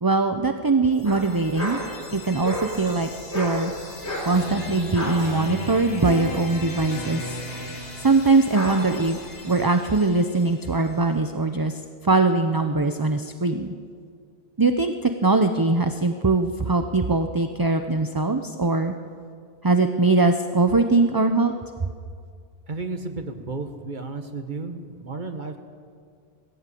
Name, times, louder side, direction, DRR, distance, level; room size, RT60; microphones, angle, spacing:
voice 1, 0.0-1.8 2.1-3.7 4.2-7.2 8.0-9.2 9.4-11.7 12.0-13.7 14.6-18.9 19.6-21.5, right 3 dB, 25° right, 7 dB, 0.7 m, -21 dB
sound 1, 0.9-10.9, left 2 dB, 65° left, 2.9 m, -37 dB
sound 2, 1.0-10.0, equal, 85° left, 4.1 m, -34 dB
sound 3, 1.5-7.9, right 1 dB, 25° left, 4.0 m, -48 dB
voice 2, 22.7-25.6, right 3 dB, 45° right, 6 dB, 1.7 m, -33 dB
20.0 x 16.0 x 8.5 m, 2.1 s
omnidirectional pair, 1.1 m